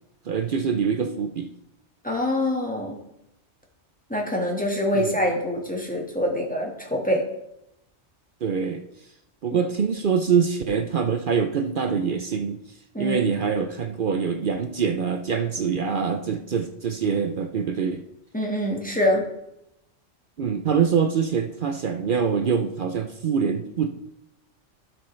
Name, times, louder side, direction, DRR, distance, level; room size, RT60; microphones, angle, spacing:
voice 1, 0.3-1.5 4.9-5.1 8.4-8.8 9.4-12.6 13.0-18.0 20.4-23.9, right 6 dB, 55° right, 7 dB, 0.7 m, -24 dB
voice 2, 2.0-3.0 4.1-7.2 12.9-13.2 18.3-19.2, left 1 dB, 5° left, -1 dB, 1.5 m, -25 dB
12.0 x 6.2 x 3.2 m, 0.83 s
omnidirectional pair, 1.2 m